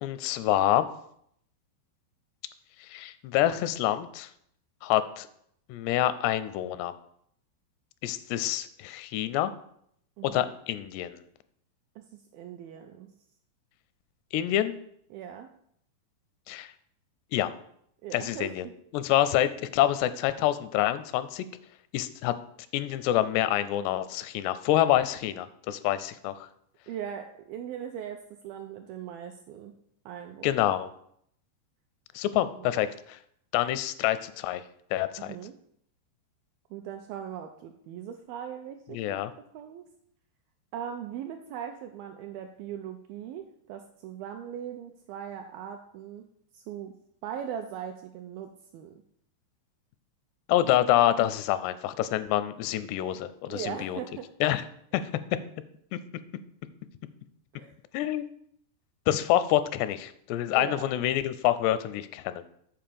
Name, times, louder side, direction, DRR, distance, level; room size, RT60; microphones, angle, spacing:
voice 1, 0.0-0.9 2.9-4.3 4.8-5.3 5.7-6.9 8.0-9.5 10.2-11.2 14.3-14.7 16.5-16.7 17.3-17.5 18.1-18.7 18.9-21.5 21.9-22.3 22.7-26.5 30.4-30.9 32.2-33.2 33.5-34.6 34.9-35.3 38.9-39.3 50.5-54.0 54.4-54.6 54.9-55.0 57.9-58.3 59.1-62.4, left 13 dB, 85° left, 14 dB, 2.7 m, -27 dB
voice 2, 10.2-10.5 12.0-12.1 12.3-13.1 15.1-15.5 18.0-18.7 26.9-29.7 30.1-30.8 32.6-32.7 35.2-35.5 36.7-39.2 39.5-39.8 40.7-46.3 46.5-46.9 47.2-48.9 53.5-54.3 57.6-57.7 60.5-60.9, right 9 dB, 85° right, 5 dB, 2.1 m, -39 dB
7.7 x 4.7 x 6.8 m, 0.70 s
omnidirectional pair, 4.8 m